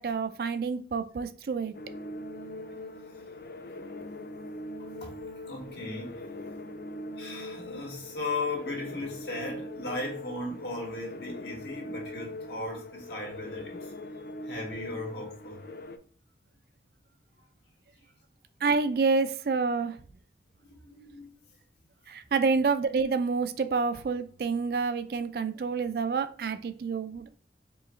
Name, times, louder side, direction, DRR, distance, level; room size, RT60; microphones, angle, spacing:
voice 1, 0.0-1.7 18.6-20.0 22.1-27.3, right 4 dB, 55° right, 0.3 m, -28 dB
sound 1, 1.7-16.0, left 1 dB, 55° left, 0.4 m, -41 dB
voice 2, 5.5-6.2 7.2-13.9 14.4-15.6 20.7-21.4, left 2 dB, 70° left, 1.7 m, -37 dB
4.6 x 3.1 x 3.1 m
head